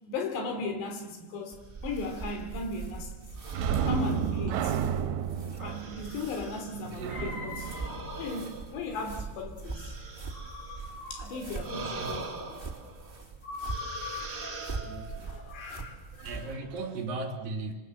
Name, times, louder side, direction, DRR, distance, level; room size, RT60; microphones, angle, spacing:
voice 1, 0.1-1.6 1.8-3.1 3.7-9.9 10.3-12.6 13.4-16.5, left 3 dB, 70° left, 5.3 m, -38 dB
sound 1, 1.5-16.5, right 4 dB, 15° right, 2.3 m, -42 dB
sound 2, 1.8-2.5 3.4-5.0 5.6-6.9 7.6-11.0 11.5-13.2 13.6-15.3, right 3 dB, 35° right, 1.7 m, -43 dB
sound 3, 3.5-8.9 16.3-16.4 16.8-16.9, right 8 dB, 75° right, 3.2 m, -32 dB
voice 2, 6.7-7.2 10.8-10.9 11.7-12.2 14.8-15.3 16.2-17.7, right 3 dB, 55° right, 4.0 m, -38 dB
26.5 x 25.5 x 7.9 m
omnidirectional pair, 5.1 m